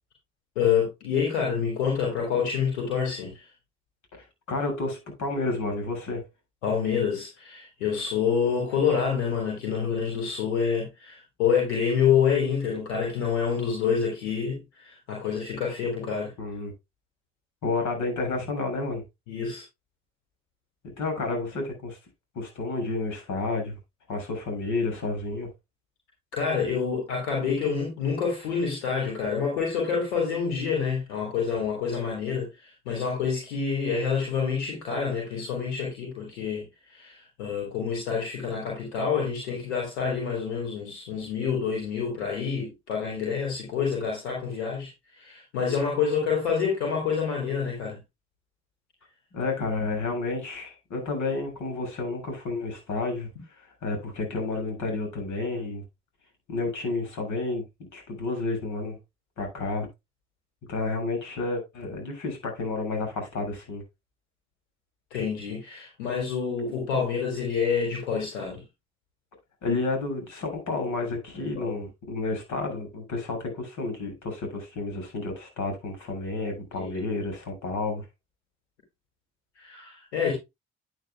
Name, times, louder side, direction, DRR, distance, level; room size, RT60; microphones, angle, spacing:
voice 1, 0.6-3.5 6.6-16.3 19.3-19.6 26.3-48.0 65.1-68.6 71.4-71.9 76.8-77.1 79.6-80.3, left 6 dB, 80° left, 3.7 m, -27 dB
voice 2, 4.2-6.2 16.4-16.7 17.6-19.0 21.0-22.0 22.4-23.8 24.1-25.5 49.3-53.3 53.6-55.8 56.5-57.6 57.9-59.0 59.4-59.9 60.7-63.8 69.6-78.0, left 3 dB, 60° left, 7.3 m, -30 dB
12.0 x 10.0 x 2.3 m
hypercardioid pair, 45°, 34 cm